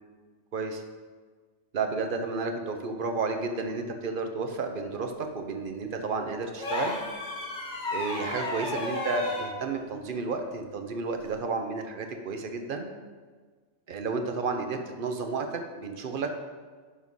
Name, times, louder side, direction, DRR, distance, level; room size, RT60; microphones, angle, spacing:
voice 1, 0.5-0.8 1.7-7.0 7.9-12.9 13.9-16.3, right 4 dB, 50° right, 5 dB, 1.0 m, -32 dB
sound 1, 6.6-9.5 11.2-11.4, left 2 dB, 40° left, 2.2 m, -33 dB
11.0 x 4.4 x 5.5 m, 1.5 s
omnidirectional pair, 1.3 m